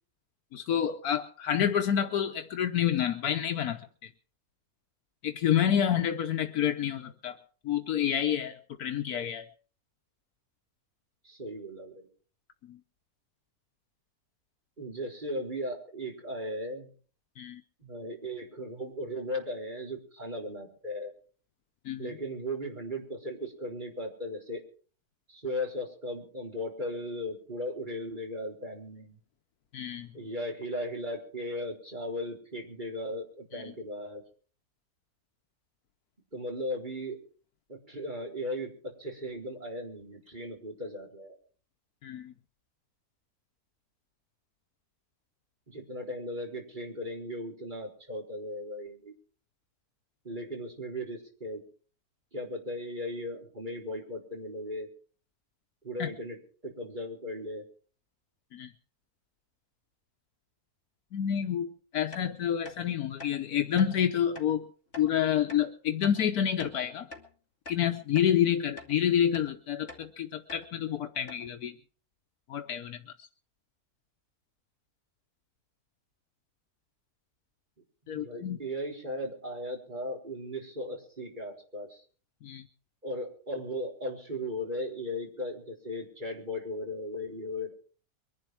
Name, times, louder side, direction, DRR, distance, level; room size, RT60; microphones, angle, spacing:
voice 1, 0.5-4.1 5.2-7.4 7.6-9.5 12.7-12.8 17.4-17.6 21.8-22.1 29.7-30.1 33.5-33.6 42.0-42.3 56.0-56.1 58.5-58.7 61.1-64.7 65.0-67.1 67.7-71.8 72.5-73.0 78.1-78.6 82.4-82.7, left 9 dB, 80° left, 6 dB, 1.4 m, -28 dB
voice 2, 11.2-12.1 14.8-16.9 17.8-21.1 22.0-24.6 25.3-29.2 30.1-34.2 36.3-37.2 37.7-41.4 45.7-49.1 50.2-51.6 52.3-54.9 55.8-56.4 56.6-57.6 78.0-82.0 83.0-87.7, equal, 30° right, -1 dB, 4.3 m, -37 dB
sound 1, 62.1-62.3 62.6-62.8 63.2-63.3 63.8-63.9 64.3-64.5 64.9-65.1 65.5-65.6 66.0-66.2 66.6-67.3 67.6-67.8 68.1-68.3 68.8-68.9 69.3-69.5 69.9-70.1 70.5-70.7 70.9-71.0 71.3-71.5, left 3 dB, 40° left, 2.8 m, -45 dB
23.0 x 11.5 x 4.7 m, 0.42 s
omnidirectional pair, 1.6 m